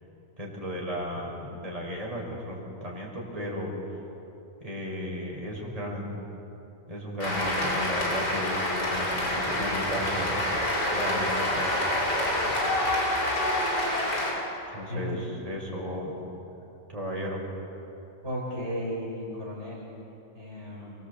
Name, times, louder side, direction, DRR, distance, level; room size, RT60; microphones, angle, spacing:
voice 1, 0.4-3.7 4.6-6.1 6.9-11.9 14.7-16.2 16.9-17.4, equal, 20° right, -3 dB, 6.0 m, -35 dB
Cheering / Applause, 7.2-14.3, left 1 dB, 80° left, 5.8 m, -27 dB
voice 2, 18.2-19.9 20.3-20.9, equal, 40° right, -5 dB, 5.2 m, -34 dB
25.5 x 23.5 x 8.4 m, 3.0 s
omnidirectional pair, 1.8 m